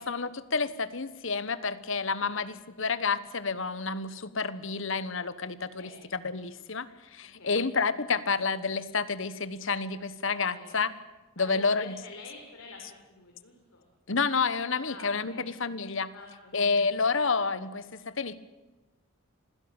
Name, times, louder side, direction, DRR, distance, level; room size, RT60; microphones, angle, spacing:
voice 1, 0.0-10.9 11.4-12.0 14.1-16.1 16.5-18.4, left 4 dB, 60° left, 15 dB, 1.2 m, -29 dB
voice 2, 5.7-6.0 7.4-7.7 10.5-10.8 11.4-12.8 13.1-13.8 14.9-15.4 16.1-16.8, left 3 dB, 80° left, 0 dB, 4.5 m, -48 dB
26.5 x 16.5 x 8.9 m, 1.1 s
head